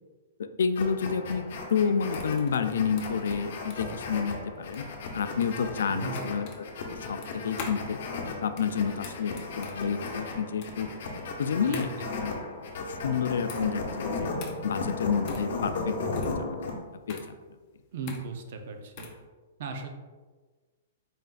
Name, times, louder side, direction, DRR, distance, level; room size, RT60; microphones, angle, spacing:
voice 1, 0.4-4.9 5.1-6.7 6.9-8.0 8.4-10.9 11.4-11.9 12.2-12.3 12.9-14.3 14.6-16.6 17.1-17.2, left 6 dB, 80° left, 9 dB, 0.3 m, -29 dB
sound 1, 0.8-16.8, left 3 dB, 65° left, 0.8 m, -36 dB
sound 2, 1.5-19.2, left 4 dB, 40° left, 0.7 m, -45 dB
voice 2, 5.9-6.2 11.7-12.1 17.9-19.1 19.6-19.9, right 4 dB, 60° right, 5 dB, 0.6 m, -36 dB
4.2 x 3.7 x 2.5 m, 1.4 s
hypercardioid pair, 145°, 0 cm